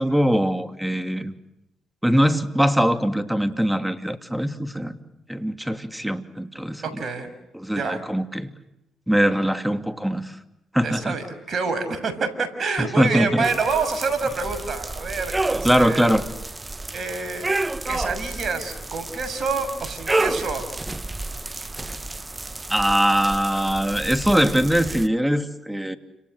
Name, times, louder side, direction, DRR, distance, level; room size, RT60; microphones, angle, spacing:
voice 1, 0.0-1.3 2.0-5.0 5.3-6.8 7.5-8.5 9.1-10.3 10.7-11.2 13.0-13.5 15.6-16.2 22.7-26.0, equal, 5° right, 9 dB, 2.8 m, -22 dB
voice 2, 6.8-7.3 7.7-8.0 10.8-16.1 16.9-17.5 17.8-20.7, right 4 dB, 50° right, 10 dB, 6.7 m, -27 dB
sound 1, 13.4-25.1, right 2 dB, 20° right, 1.1 m, -30 dB
30.0 x 28.0 x 6.8 m, 0.88 s
supercardioid pair, 55°, 0 cm